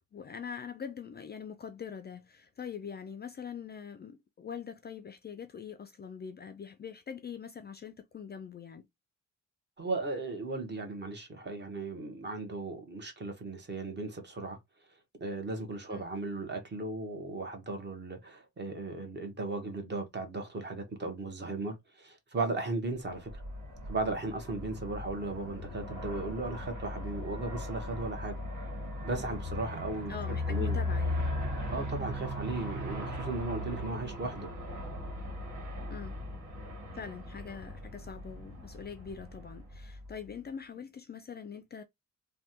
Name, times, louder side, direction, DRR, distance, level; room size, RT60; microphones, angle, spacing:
voice 1, 0.0-8.9 15.9-16.0 30.1-31.4 35.9-36.2 36.9-41.8, left 7 dB, 35° left, 0.4 m, -43 dB
voice 2, 9.8-14.6 15.2-23.4 23.9-28.4 29.0-30.2 30.5-30.8 31.7-34.5, right 2 dB, 35° right, 1.1 m, -36 dB
Aircraft, 23.1-40.3, left 1 dB, 70° right, 1.6 m, -38 dB
3.3 x 2.2 x 2.8 m
cardioid pair, 105°, 31 cm